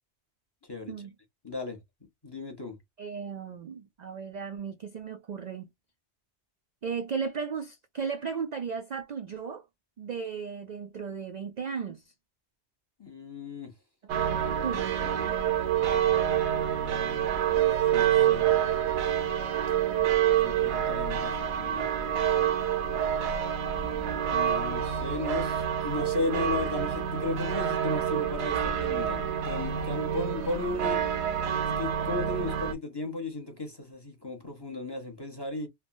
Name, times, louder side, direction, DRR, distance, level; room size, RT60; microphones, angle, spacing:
voice 1, 1.4-1.8 2.2-2.8 13.0-13.7 14.5-15.4 17.4-18.5 20.4-21.9 24.2-31.0 31.8-35.7, left 2 dB, 25° left, 0.7 m, -35 dB
voice 2, 3.0-5.7 6.8-9.6 10.0-12.0 14.2-14.9, right 6 dB, 60° right, 0.4 m, -35 dB
sound 1, 14.1-32.7, right 10 dB, 80° right, 0.9 m, -27 dB
3.2 x 2.1 x 2.5 m
omnidirectional pair, 1.2 m